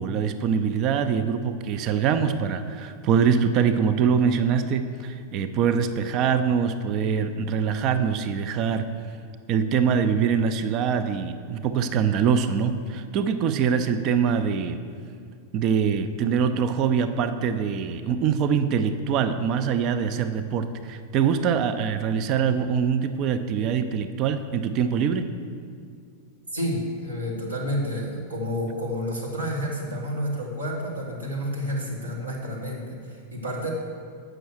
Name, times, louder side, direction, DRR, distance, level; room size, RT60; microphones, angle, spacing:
voice 1, 0.0-8.9 9.5-14.8 15.5-25.3, right 7 dB, 40° right, 9 dB, 0.4 m, -24 dB
voice 2, 26.5-33.7, equal, 80° right, -3 dB, 1.6 m, -30 dB
7.8 x 6.2 x 6.2 m, 2.2 s
figure-of-eight pair, 90°, 0 cm